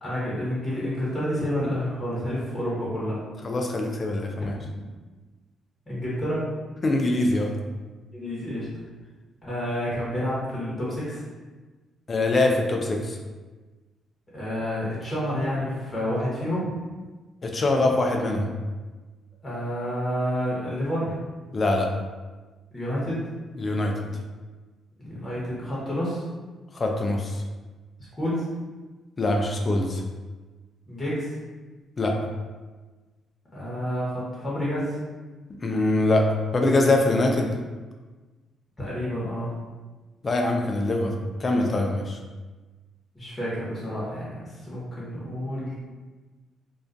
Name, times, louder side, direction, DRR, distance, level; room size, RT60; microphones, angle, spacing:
voice 1, 0.0-3.2 5.9-6.5 8.1-8.7 9.4-11.2 14.3-16.7 19.4-21.2 22.7-23.2 25.0-26.2 28.1-28.4 30.9-31.3 33.5-35.0 38.8-39.5 43.1-45.7, equal, 20° left, -8 dB, 1.0 m, -29 dB
voice 2, 3.4-4.5 6.8-7.5 12.1-13.2 17.4-18.5 21.5-21.9 23.6-24.1 26.7-27.4 29.2-30.0 32.0-32.2 35.6-36.3 36.5-37.6 40.2-41.1 41.4-42.2, left 2 dB, 35° left, 2 dB, 0.4 m, -23 dB
2.3 x 2.3 x 2.5 m, 1.3 s
cardioid pair, 90°, 0 cm